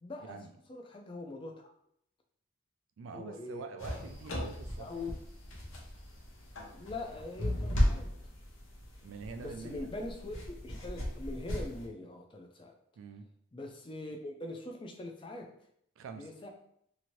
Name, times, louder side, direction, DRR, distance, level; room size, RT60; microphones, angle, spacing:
voice 1, 0.0-1.7 3.1-3.6 4.3-4.4 4.8-5.2 6.7-8.1 9.4-10.4 10.6-12.7 13.5-15.5 16.2-16.5, left 2 dB, 25° left, 2 dB, 0.4 m, -42 dB
voice 2, 3.0-4.9 9.0-9.9 13.0-13.3 16.0-16.3, right 4 dB, 80° right, 7 dB, 0.3 m, -45 dB
sound 1, 3.8-11.9, left 1 dB, 80° left, 0.7 m, -36 dB
2.8 x 2.6 x 3.0 m, 0.70 s
head